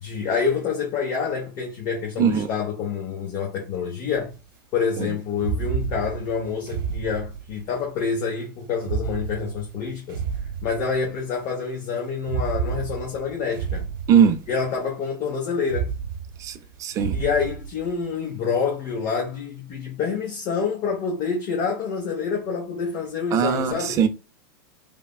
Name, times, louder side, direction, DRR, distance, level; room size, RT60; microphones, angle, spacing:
voice 1, 0.0-4.3 4.7-10.2 10.6-13.9 14.5-15.9 17.1-24.0, left 5 dB, 45° left, 1.0 m, -27 dB
sound 1, 4.1-4.4 5.3-7.8 8.8-11.3 12.2-14.8 15.6-18.2, right 7 dB, 80° right, 0.9 m, -31 dB
voice 2, 16.8-17.2 23.3-24.1, right 8 dB, 30° right, 0.4 m, -20 dB
3.3 x 2.1 x 2.3 m
supercardioid pair, 130°, 11 cm